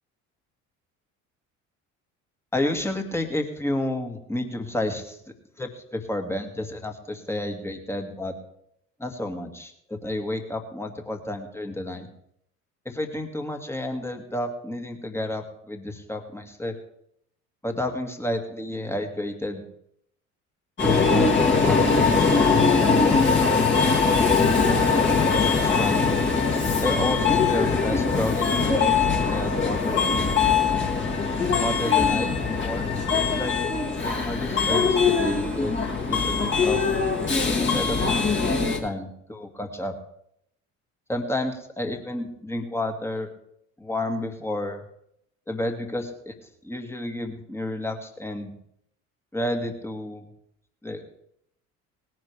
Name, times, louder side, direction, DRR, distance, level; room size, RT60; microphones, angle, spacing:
voice 1, 2.5-5.2 5.6-8.4 9.0-12.1 12.9-16.7 17.6-19.6 21.1-23.9 24.7-26.2 26.8-30.5 31.6-32.9 33.4-33.6 34.0-36.8 37.6-38.1 38.5-39.9 41.1-43.3 43.8-44.8 45.5-46.3 46.6-48.5 49.3-50.2 50.8-51.0, left 1 dB, 5° left, 4 dB, 2.3 m, -31 dB
Subway metro underground, 20.8-38.8, left 4 dB, 25° left, 2.9 m, -21 dB
19.5 x 10.5 x 3.5 m, 0.73 s
figure-of-eight pair, 55°, 42 cm